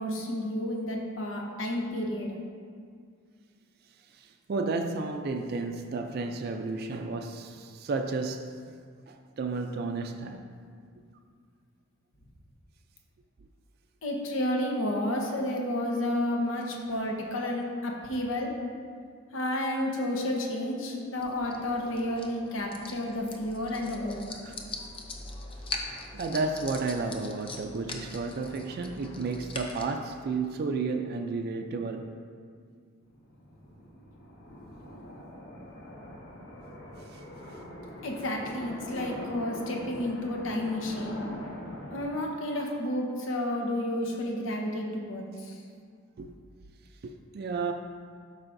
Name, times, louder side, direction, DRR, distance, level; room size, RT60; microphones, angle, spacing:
voice 1, 0.0-2.3 14.0-18.5 19.3-24.2 38.0-41.2 41.9-45.6, left 1 dB, 75° left, 1.0 m, -31 dB
voice 2, 4.1-8.8 9.1-10.5 11.1-11.2 24.4-24.6 26.1-32.2 37.1-37.2 46.2-46.4 47.0-47.7, right 3 dB, 50° right, 0.4 m, -32 dB
sound 1, 21.2-29.9, left 3 dB, 30° left, 0.6 m, -42 dB
sound 2, 33.1-42.0, left 1 dB, 60° left, 1.2 m, -43 dB
12.5 x 4.8 x 2.6 m
head